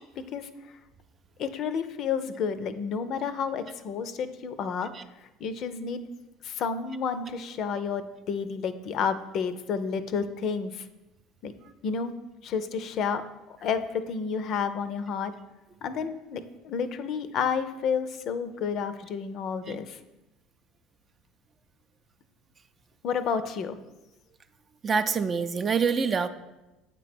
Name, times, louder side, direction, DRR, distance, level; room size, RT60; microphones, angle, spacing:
voice 1, 0.1-0.5 1.4-4.9 5.4-6.0 6.4-10.9 11.4-11.5 11.8-12.1 12.4-13.2 13.5-15.3 15.8-20.0 23.0-23.8, left 6 dB, 55° left, 11 dB, 0.5 m, -30 dB
voice 2, 24.8-26.3, right 5 dB, 35° right, 10 dB, 0.4 m, -26 dB
8.0 x 3.0 x 6.0 m, 1.0 s
hypercardioid pair, 70°, 0 cm